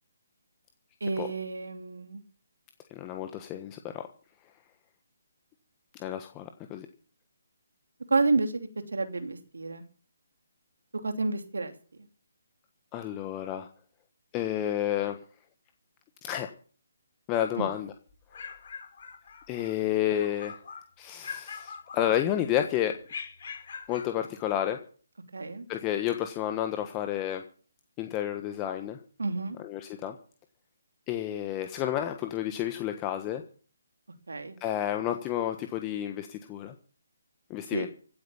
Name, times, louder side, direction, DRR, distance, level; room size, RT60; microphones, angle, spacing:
voice 1, 1.0-2.2 8.1-9.9 11.0-11.7 17.6-17.7 25.3-25.7 29.2-29.6 34.3-34.6 37.7-37.8, right 3 dB, 75° right, 7 dB, 2.9 m, -30 dB
voice 2, 2.9-4.0 6.0-6.9 12.9-13.7 14.3-15.2 16.2-16.5 17.3-17.9 19.5-20.6 21.0-23.0 23.9-24.8 25.7-27.4 28.0-29.0 29.6-30.1 31.1-33.4 34.6-36.7 37.5-37.9, left 11 dB, 20° left, 6 dB, 1.3 m, -30 dB
sound 1, 18.1-19.8 20.1-20.9 21.2-22.5 23.1-24.2, left 6 dB, 50° left, 4.6 m, -43 dB
16.5 x 9.5 x 7.2 m, 0.42 s
figure-of-eight pair, 145°, 0 cm